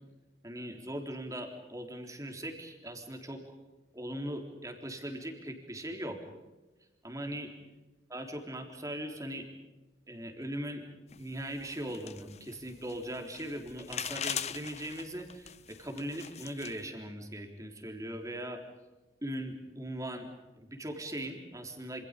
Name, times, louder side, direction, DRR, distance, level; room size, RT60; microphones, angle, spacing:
voice 1, 0.4-3.4 3.9-6.2 7.0-7.5 8.1-9.5 10.1-10.8 11.1-18.6 19.2-22.1, right 1 dB, 20° right, 4 dB, 3.6 m, -40 dB
sound 1, 11.1-16.9, left 9 dB, 35° left, 0.7 m, -42 dB
27.5 x 26.0 x 5.2 m, 1.2 s
head